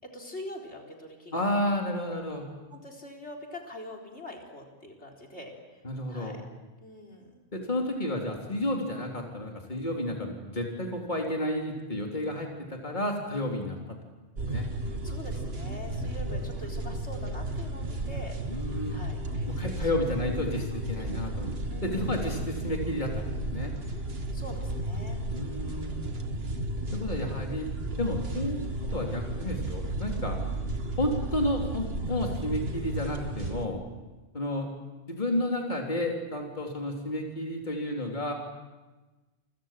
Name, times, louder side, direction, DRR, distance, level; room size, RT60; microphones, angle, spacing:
voice 1, 0.0-1.4 2.0-2.2 2.7-5.8 6.1-6.4 6.8-7.4 14.5-14.7 15.0-18.6 18.9-19.9 21.7-22.5 24.3-25.2, left 1 dB, 65° left, 4 dB, 4.3 m, -44 dB
voice 2, 1.3-2.5 5.8-6.4 7.5-13.8 14.5-14.7 18.5-19.0 19.5-21.5 21.8-23.2 23.5-23.7 25.3-26.1 26.9-27.7 28.0-30.4 31.0-33.8 34.3-34.7 35.1-38.3, left 1 dB, 40° left, 0 dB, 3.8 m, -31 dB
sound 1, 14.3-33.7, right 1 dB, 55° right, 1.8 m, -33 dB
29.0 x 24.5 x 7.6 m, 1.2 s
omnidirectional pair, 1.2 m